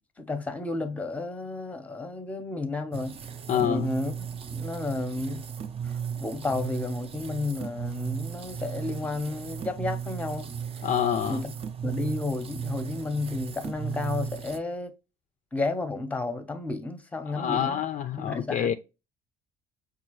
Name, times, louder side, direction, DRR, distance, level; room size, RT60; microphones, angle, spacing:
voice 1, 0.2-3.2 3.5-5.4 5.8-10.5 11.3-11.5 11.8-14.9 15.5-17.8 18.1-18.7, left 3 dB, 10° left, 0.7 m, -32 dB
sound 1, 2.9-14.6, right 8 dB, 35° right, 0.5 m, -35 dB
voice 2, 3.5-3.9 10.8-11.4 17.3-18.7, left 9 dB, 45° left, 0.4 m, -27 dB
5.3 x 2.4 x 2.9 m
cardioid pair, 110°, 17 cm